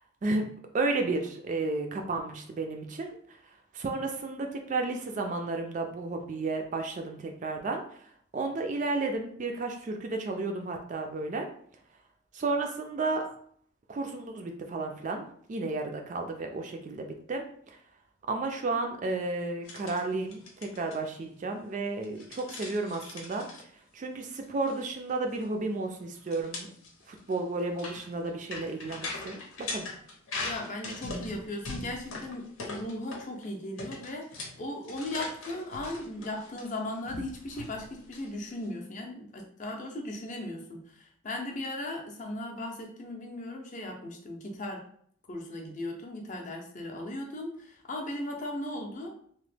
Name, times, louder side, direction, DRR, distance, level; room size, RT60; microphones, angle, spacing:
voice 1, 0.7-3.4 3.7-8.0 8.3-11.5 12.3-13.3 13.9-17.8 18.3-23.5 23.9-26.7 27.1-29.9, right 3 dB, 35° right, 4 dB, 0.3 m, -32 dB
sound 1, 19.7-20.0 20.3-21.0 22.0-23.6 24.4-24.7 25.0-25.1 25.4-25.5 26.3-33.5 33.8-38.7, left 2 dB, 90° left, 0.8 m, -41 dB
voice 2, 30.4-44.8 45.3-49.1, left 1 dB, 35° left, 1 dB, 0.5 m, -37 dB
2.9 x 2.0 x 3.2 m, 0.62 s
head